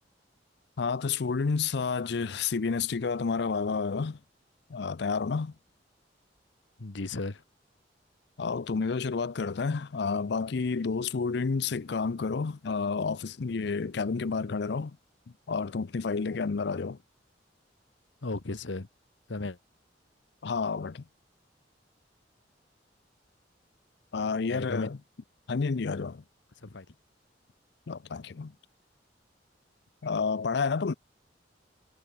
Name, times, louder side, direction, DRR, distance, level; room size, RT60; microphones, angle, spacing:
voice 1, 0.8-4.2 4.7-5.5 8.4-15.0 15.5-17.0 20.4-21.0 24.1-25.0 25.5-26.2 27.9-28.5 30.0-30.9, left 4 dB, 65° left, 0.5 m, -30 dB
voice 2, 6.8-7.4 18.2-18.9 19.3-19.6 24.5-25.0 26.6-26.9, left 2 dB, 80° left, 1.1 m, -35 dB
head